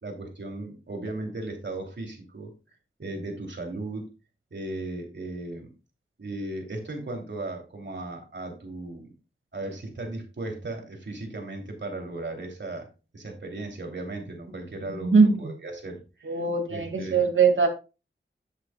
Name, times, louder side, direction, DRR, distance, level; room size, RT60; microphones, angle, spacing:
voice 1, 0.0-2.5 3.0-4.1 4.5-5.7 6.2-9.1 9.5-12.9 13.1-15.1 15.4-16.4 16.7-17.2, right 2 dB, 65° right, 2 dB, 2.9 m, -36 dB
voice 2, 14.8-15.5 16.2-17.7, right 4 dB, 80° right, 4 dB, 2.0 m, -21 dB
11.0 x 7.4 x 2.2 m, 0.29 s
cardioid pair, 50°, 20 cm